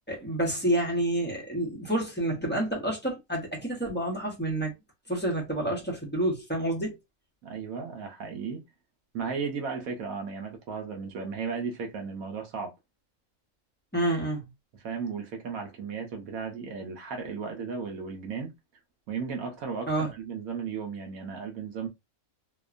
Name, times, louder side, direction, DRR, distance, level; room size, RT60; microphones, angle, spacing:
voice 1, 0.1-4.7 5.1-7.0 13.9-14.4 19.9-20.1, right 1 dB, 10° left, 0.6 m, -28 dB
voice 2, 7.4-8.6 9.1-12.7 14.8-18.5 19.1-21.9, right 5 dB, 75° right, 1.1 m, -35 dB
2.9 x 2.1 x 2.4 m
omnidirectional pair, 1.5 m